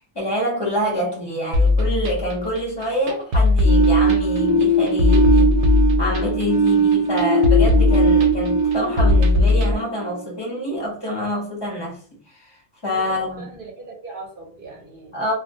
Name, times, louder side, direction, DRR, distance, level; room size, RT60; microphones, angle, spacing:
voice 1, 0.1-5.6 6.0-12.6 12.8-13.5 15.1-15.3, equal, 20° left, 0.7 m, -26 dB
sound 1, 1.5-9.7, left 3 dB, 80° right, 1.0 m, -18 dB
sound 2, 3.7-10.4, right 2 dB, 60° left, 0.8 m, -20 dB
voice 2, 12.9-15.3, right 3 dB, 50° right, 0.8 m, -39 dB
2.3 x 2.2 x 2.6 m
omnidirectional pair, 1.4 m